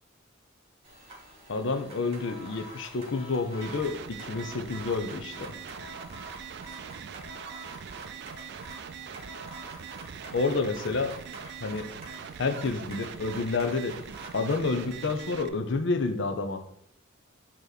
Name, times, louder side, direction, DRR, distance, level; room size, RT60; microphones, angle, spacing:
sound 1, 0.8-15.3, right 1 dB, 30° right, 1.7 m, -47 dB
voice 1, 1.5-5.3 10.3-11.1 11.6-11.9 12.4-14.0 14.3-16.6, left 3 dB, 65° left, 8 dB, 0.6 m, -29 dB
sound 2, 3.6-15.5, right 7 dB, 55° right, 0.4 m, -42 dB
8.0 x 3.0 x 4.0 m, 0.71 s
head